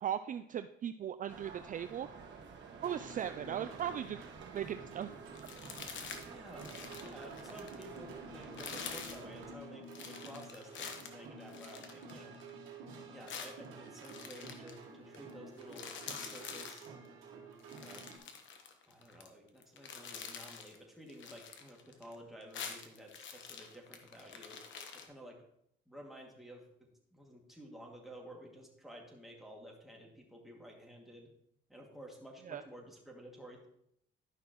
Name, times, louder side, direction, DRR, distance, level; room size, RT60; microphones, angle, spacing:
voice 1, 0.0-2.1 2.8-5.1 32.5-32.6, right 9 dB, 40° right, 10 dB, 0.4 m, -38 dB
sound 1, 1.3-9.6, right 5 dB, 65° right, 1.4 m, -51 dB
sound 2, 2.8-18.2, right 3 dB, 90° right, 1.5 m, -51 dB
sound 3, 5.3-6.3 6.5-8.0 8.4-9.2 9.9-12.5 13.3-14.8 15.1-15.3 15.6-16.9 17.6-19.3 19.6-20.8 21.1-22.1 22.4-25.0, left 6 dB, 70° left, 1.1 m, -46 dB
voice 2, 6.2-6.7 7.0-12.3 13.1-17.0 17.8-18.2 18.9-24.6 25.0-25.4 25.9-26.7 27.1-31.3 31.7-33.7, equal, ahead, -2 dB, 2.2 m, -52 dB
11.5 x 5.8 x 3.0 m, 0.75 s
cardioid pair, 90°, 20 cm